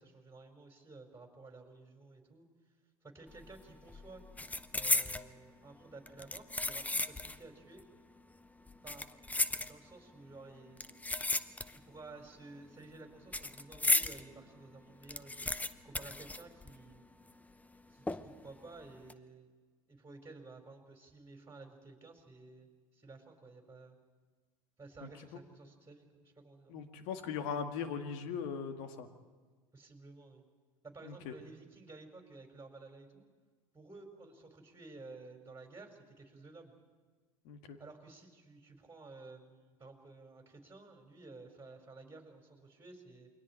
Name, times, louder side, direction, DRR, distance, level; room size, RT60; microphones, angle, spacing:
voice 1, 0.0-2.4 3.0-4.2 4.7-7.8 8.8-9.2 9.6-10.9 11.7-15.5 15.8-17.1 17.9-19.5 19.9-24.0 24.8-26.9 29.7-30.4 30.8-33.3 33.7-36.7 37.8-43.3, right 3 dB, 15° right, 3 dB, 4.5 m, -53 dB
sound 1, 3.3-3.6 3.9-5.3 6.1-7.5 7.8-7.9 8.7-10.1 10.8-12.0 12.2-14.2 14.6-14.7 14.9-17.0 17.3-17.4 18.1-18.5 18.9-19.1, left 2 dB, 10° left, 0.8 m, -35 dB
voice 2, 26.7-29.1 31.0-31.3 37.5-37.8, left 6 dB, 60° left, 7 dB, 1.9 m, -39 dB
28.5 x 22.5 x 4.5 m, 1.4 s
hypercardioid pair, 85°, 19 cm